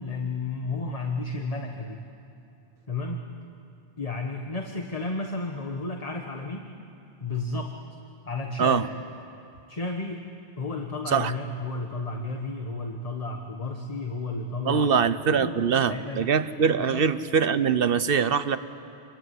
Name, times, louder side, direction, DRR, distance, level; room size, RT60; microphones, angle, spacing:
voice 1, 0.0-2.0 2.9-3.3 4.0-6.7 7.2-7.7 8.3-8.9 9.7-10.2 10.6-16.3 16.9-17.0, left 3 dB, 35° left, 3 dB, 1.5 m, -32 dB
voice 2, 14.6-18.6, right 6 dB, 65° right, 13 dB, 1.1 m, -23 dB
28.0 x 22.5 x 9.5 m, 2.6 s
omnidirectional pair, 1.0 m